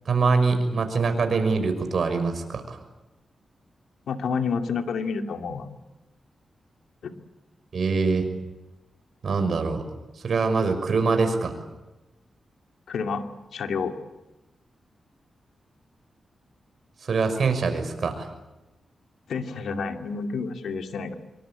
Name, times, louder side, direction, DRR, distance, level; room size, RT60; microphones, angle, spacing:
voice 1, 0.1-2.8 7.7-8.3 9.2-9.8 10.2-11.5 17.0-18.3, right 4 dB, 60° right, 7 dB, 5.9 m, -24 dB
voice 2, 4.1-5.7 7.0-7.1 12.9-13.3 13.5-13.9 19.3-21.1, left 5 dB, 85° left, 6 dB, 2.5 m, -29 dB
26.0 x 24.0 x 8.7 m, 1.1 s
cardioid pair, 80°, 0 cm